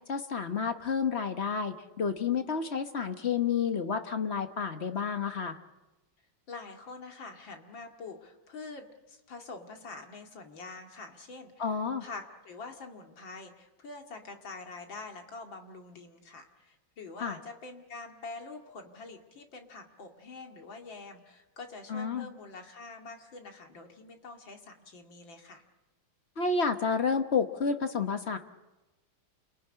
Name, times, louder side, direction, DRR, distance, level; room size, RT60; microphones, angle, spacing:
voice 1, 0.1-5.6 11.6-12.0 17.2-17.4 21.9-22.3 26.4-28.4, left 5 dB, 40° left, 8 dB, 1.1 m, -30 dB
voice 2, 6.5-25.6, left 3 dB, 65° left, 3 dB, 3.0 m, -45 dB
28.5 x 19.5 x 9.9 m, 1.1 s
omnidirectional pair, 2.3 m